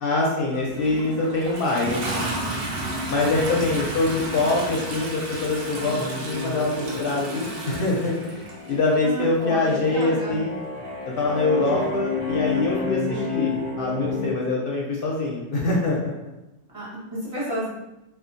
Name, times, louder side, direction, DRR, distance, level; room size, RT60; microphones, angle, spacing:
voice 1, 0.0-2.4 3.1-10.6 11.0-16.1, left 2 dB, 60° left, -3 dB, 0.7 m, -24 dB
Toilet flush, 0.5-9.0 10.0-10.1, right 1 dB, 60° right, 0.7 m, -32 dB
voice 2, 3.2-3.6 9.0-10.5 11.5-11.7 12.7-13.3 16.7-17.7, right 1 dB, 30° right, -10 dB, 1.1 m, -32 dB
sound 1, 5.7-14.3, left 4 dB, 85° right, 1.3 m, -31 dB
2.6 x 2.4 x 2.5 m, 0.95 s
omnidirectional pair, 1.2 m